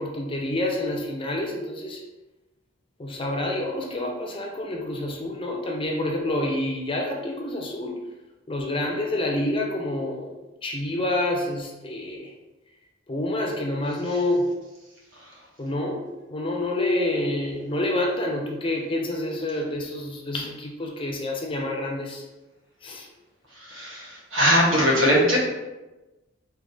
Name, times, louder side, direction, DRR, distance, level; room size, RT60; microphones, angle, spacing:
voice 1, 0.0-2.0 3.0-7.9 8.5-10.3 10.6-12.3 13.1-14.5 15.6-22.2 22.8-23.1, left 1 dB, 25° left, 1 dB, 0.5 m, -28 dB
voice 2, 23.7-25.4, equal, 80° right, -4 dB, 1.2 m, -20 dB
3.6 x 2.8 x 3.8 m, 1.1 s
head